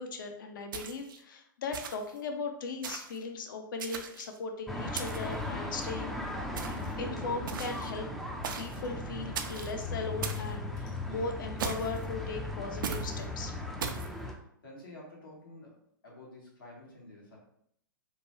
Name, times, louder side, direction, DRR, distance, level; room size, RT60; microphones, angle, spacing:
voice 1, 0.0-6.1 6.6-8.1 8.6-13.6, left 4 dB, 65° left, 5 dB, 0.6 m, -38 dB
sound 1, 0.7-1.2 1.7-2.2 2.8-3.2 3.8-4.4 4.9-5.4 6.6-6.9 7.5-7.9 8.4-8.8 9.3-9.7 10.2-10.5 11.6-12.0 12.8-13.1 13.8-14.1, right 6 dB, 70° right, 0.4 m, -38 dB
sound 2, 4.7-14.3, left 2 dB, ahead, 0.3 m, -37 dB
Clock, 5.6-6.0 6.7-7.0 7.7-7.9 8.7-9.0 9.7-9.9 10.7-11.0 11.7-11.9 12.7-13.0, left 2 dB, 30° left, 0.7 m, -59 dB
voice 2, 13.8-15.7 16.0-17.4, left 1 dB, 90° left, -4 dB, 1.4 m, -51 dB
3.0 x 2.2 x 3.0 m, 0.69 s
hypercardioid pair, 120°, 11 cm